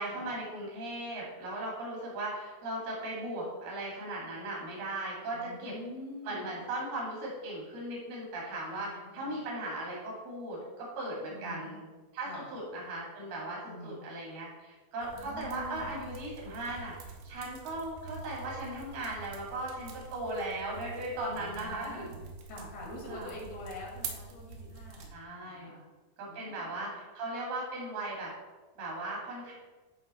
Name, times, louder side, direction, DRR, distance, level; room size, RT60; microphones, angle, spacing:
voice 1, 0.0-5.7 6.2-11.8 12.1-16.9 17.2-22.1 23.1-23.3 25.1-25.7 26.2-28.3 28.8-29.5, right 2 dB, 70° right, -4 dB, 4.2 m, -38 dB
voice 2, 5.3-6.5 8.5-9.3 11.3-11.7 12.3-12.4 13.7-14.0 15.1-15.9 21.3-22.2 22.5-25.1 25.5-25.8 26.2-26.9, left 1 dB, 75° left, -3 dB, 4.0 m, -45 dB
sound 1, 15.0-25.1, right 4 dB, 90° right, 3.0 m, -46 dB
10.5 x 3.8 x 4.3 m, 1.3 s
omnidirectional pair, 4.6 m